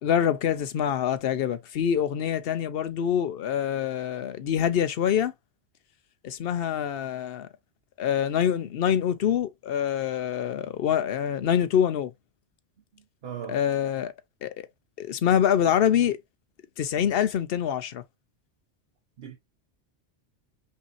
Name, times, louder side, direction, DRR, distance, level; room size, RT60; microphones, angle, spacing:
voice 1, 0.0-5.3 6.2-7.5 8.0-12.1 13.5-14.1 14.4-14.7 15.0-16.2 16.8-18.0, left 9 dB, 60° left, 0.8 m, -25 dB
voice 2, 12.9-13.6 19.2-19.4, right 9 dB, 60° right, 1.0 m, -39 dB
5.5 x 2.8 x 2.6 m
omnidirectional pair, 1.2 m